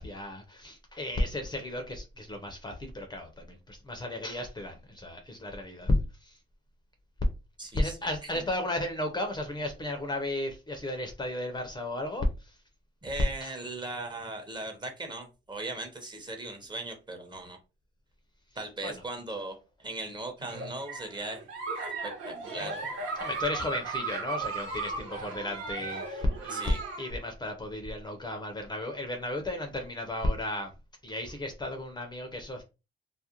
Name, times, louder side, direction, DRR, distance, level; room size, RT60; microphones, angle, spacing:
voice 1, 0.0-6.0 6.2-6.4 7.7-12.6 13.4-13.5 18.8-18.9 23.2-30.7 31.0-32.6, left 1 dB, 20° left, 0.6 m, -33 dB
voice 2, 7.6-8.0 8.2-8.4 13.0-17.6 18.5-21.4 22.0-22.8 26.5-26.8, right 2 dB, 20° right, 0.8 m, -38 dB
Giggle, 20.4-27.1, right 3 dB, 80° right, 1.0 m, -36 dB
2.4 x 2.0 x 2.8 m
cardioid pair, 90°, 20 cm